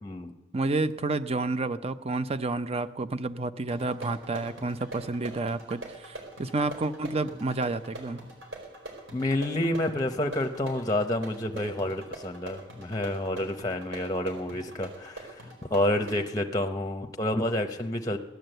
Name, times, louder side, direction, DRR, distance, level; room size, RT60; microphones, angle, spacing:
voice 1, 0.0-0.3 9.1-15.4 15.7-18.2, left 1 dB, 20° left, 6 dB, 0.8 m, -29 dB
voice 2, 0.5-8.2, right 3 dB, 30° right, 13 dB, 0.6 m, -30 dB
sound 1, 3.7-16.3, right 1 dB, 70° right, 4.5 m, -43 dB
16.5 x 11.0 x 7.9 m, 0.96 s
head